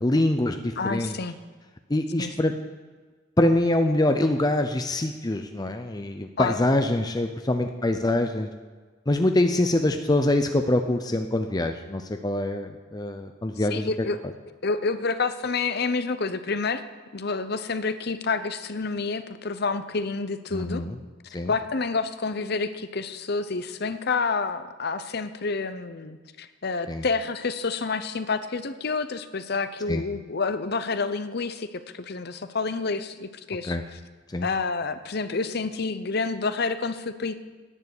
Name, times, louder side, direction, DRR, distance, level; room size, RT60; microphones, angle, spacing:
voice 1, 0.0-1.2 1.9-2.5 3.4-8.5 9.1-13.9 20.5-21.0 21.3-21.5 26.9-27.0 29.9-30.0 33.7-33.8 34.3-34.5, left 1 dB, 20° left, 6 dB, 0.6 m, -24 dB
voice 2, 0.8-1.4 2.2-2.3 6.4-6.6 13.7-14.2 14.6-16.8 17.1-20.8 21.5-33.8 34.4-37.4, left 4 dB, 55° left, 12 dB, 0.7 m, -28 dB
11.0 x 9.4 x 8.3 m, 1.4 s
head